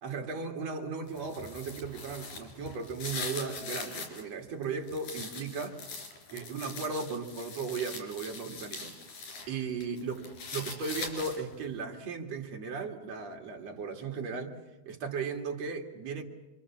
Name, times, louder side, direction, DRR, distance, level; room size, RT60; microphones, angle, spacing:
voice 1, 0.0-5.8 6.3-8.9 9.5-10.2 10.5-14.6 14.9-16.2, right 4 dB, 55° right, 2 dB, 3.1 m, -36 dB
sound 1, 1.1-4.2 4.6-9.5 9.8-11.6, left 3 dB, 85° left, 5.5 m, -42 dB
27.5 x 26.0 x 7.2 m, 1.1 s
omnidirectional pair, 3.8 m